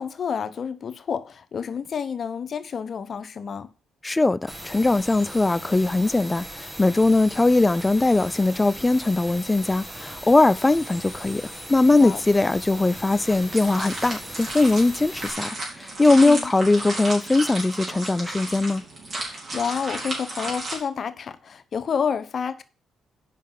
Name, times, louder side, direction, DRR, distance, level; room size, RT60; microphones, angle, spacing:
voice 1, 0.0-3.7 12.0-12.2 16.1-16.5 19.2-22.6, left 6 dB, 50° left, 0.7 m, -29 dB
voice 2, 4.0-18.8, left 2 dB, 15° left, 0.3 m, -20 dB
sound 1, 4.5-15.3, equal, 15° right, 2.0 m, -39 dB
sound 2, 12.8-20.8, right 2 dB, 45° right, 4.5 m, -34 dB
7.5 x 5.8 x 5.5 m
cardioid pair, 90°, 0 cm